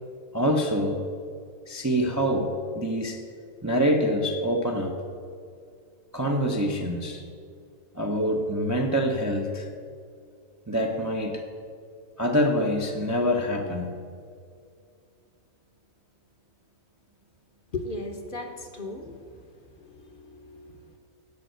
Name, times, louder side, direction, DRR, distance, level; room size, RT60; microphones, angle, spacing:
voice 1, 0.3-1.0 1.7-3.2 3.6-5.0 6.1-7.2 7.9-9.7 10.7-11.4 12.2-13.9, equal, 20° right, 2 dB, 0.5 m, -25 dB
voice 2, 17.7-19.1 19.8-21.0, left 2 dB, 45° left, 4 dB, 0.9 m, -37 dB
10.5 x 5.5 x 7.8 m, 2.3 s
omnidirectional pair, 1.4 m